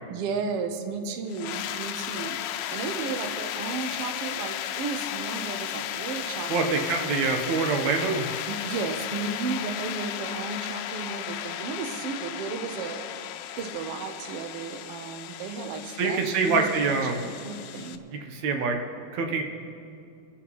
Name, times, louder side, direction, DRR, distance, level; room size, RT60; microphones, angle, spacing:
voice 1, 0.1-2.4 2.7-6.8 8.5-13.1 13.6-16.7 16.9-18.0, right 5 dB, 90° right, 6 dB, 1.3 m, -34 dB
sound 1, 1.3-18.0, left 11 dB, 85° left, 2.3 m, -35 dB
voice 2, 6.5-8.3 16.0-17.2 18.3-18.8 19.1-19.4, right 4 dB, 65° right, 3 dB, 2.1 m, -25 dB
30.0 x 11.0 x 3.1 m, 2.5 s
omnidirectional pair, 4.0 m